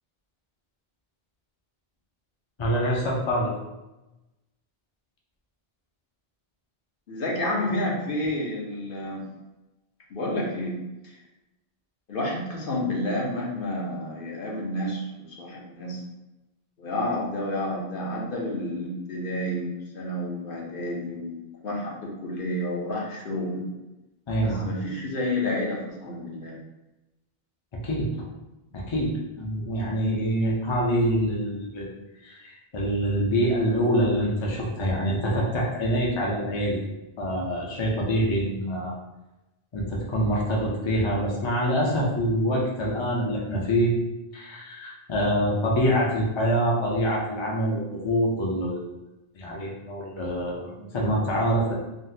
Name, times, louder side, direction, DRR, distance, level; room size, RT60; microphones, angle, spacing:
voice 1, 2.6-3.5 24.3-24.6 27.8-28.1 28.7-31.9 32.2-36.8 37.2-38.9 39.7-43.9 44.3-48.8 49.4-51.7, equal, 35° left, -3 dB, 0.5 m, -25 dB
voice 2, 7.1-9.2 10.1-10.8 11.0-11.1 12.1-16.0 16.8-21.4 21.6-23.7 24.4-26.5, left 1 dB, 60° left, -3 dB, 0.9 m, -30 dB
3.7 x 2.2 x 2.6 m, 1.0 s
omnidirectional pair, 1.0 m